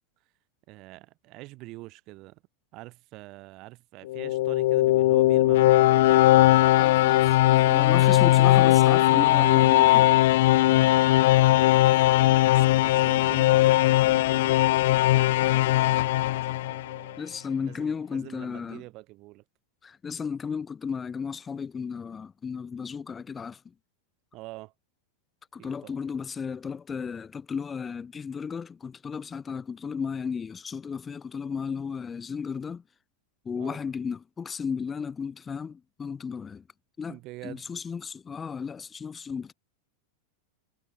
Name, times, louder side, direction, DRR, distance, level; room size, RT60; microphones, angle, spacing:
voice 1, 0.7-2.4 2.7-6.1 7.8-8.2 10.6-14.6 15.1-17.2 17.6-19.4 24.3-24.7 25.6-26.0 33.6-33.8 37.1-37.7, right 21 dB, 40° right, 2.8 m, -45 dB
sound 1, 4.1-17.1, left 16 dB, 55° left, 0.4 m, -19 dB
voice 2, 6.8-10.1 17.2-18.8 19.8-23.7 25.5-32.8 33.4-36.6 37.0-37.2 37.4-39.5, left 6 dB, 20° left, 1.0 m, -34 dB
figure-of-eight pair, 90°, 0 cm